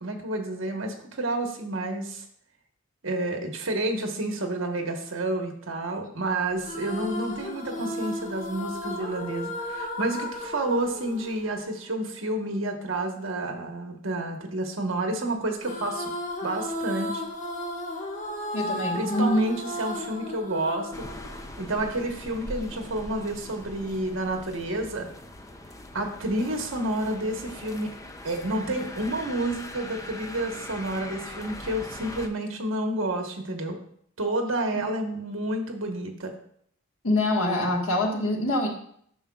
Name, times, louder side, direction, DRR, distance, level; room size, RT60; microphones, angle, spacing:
voice 1, 0.0-2.2 3.0-16.1 16.4-17.2 18.9-20.9 21.6-25.1 25.9-27.9 28.2-33.8 34.2-36.3, right 1 dB, 65° right, 3 dB, 1.2 m, -30 dB
sound 1, 6.6-12.1 15.6-22.0, left 1 dB, 35° left, 1.6 m, -34 dB
voice 2, 18.5-19.4 34.7-34.8 37.0-38.7, left 1 dB, 90° left, 0 dB, 1.6 m, -25 dB
sound 2, 20.9-32.3, left 1 dB, 15° left, 0.5 m, -41 dB
10.0 x 6.7 x 2.4 m, 0.66 s
head